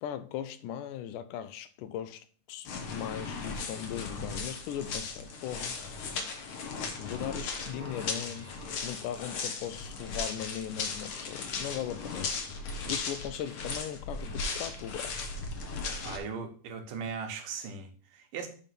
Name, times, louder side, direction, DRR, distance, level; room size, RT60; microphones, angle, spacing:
voice 1, 0.0-5.8 7.0-8.5 8.8-15.3, left 10 dB, 85° left, 2.1 m, -39 dB
sound 1, 2.7-16.2, left 4 dB, 60° left, 1.5 m, -37 dB
Human voice, 7.7-9.6, right 1 dB, 15° right, 1.2 m, -51 dB
voice 2, 16.0-18.5, right 5 dB, 80° right, 2.8 m, -38 dB
9.0 x 3.6 x 5.9 m
omnidirectional pair, 3.7 m